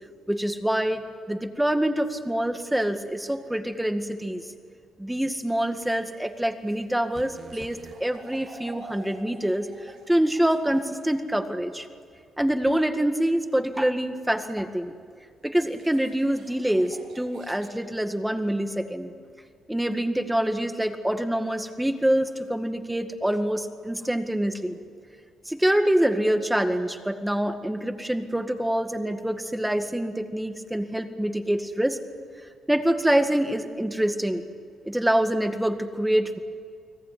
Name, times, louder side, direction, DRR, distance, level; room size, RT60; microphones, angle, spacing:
voice 1, 0.3-4.5 5.0-9.7 10.1-11.9 12.4-14.9 15.4-19.1 19.7-24.8 25.5-32.0 32.7-34.4 34.8-36.4, right 1 dB, 5° right, 7 dB, 2.0 m, -25 dB
sound 1, 5.6-11.2 14.3-14.4 15.5-17.8, right 3 dB, 75° right, 5.2 m, -48 dB
sound 2, 7.1-8.0, right 4 dB, 40° right, 2.5 m, -45 dB
30.0 x 20.0 x 9.7 m, 2.2 s
cardioid pair, 90°, 0 cm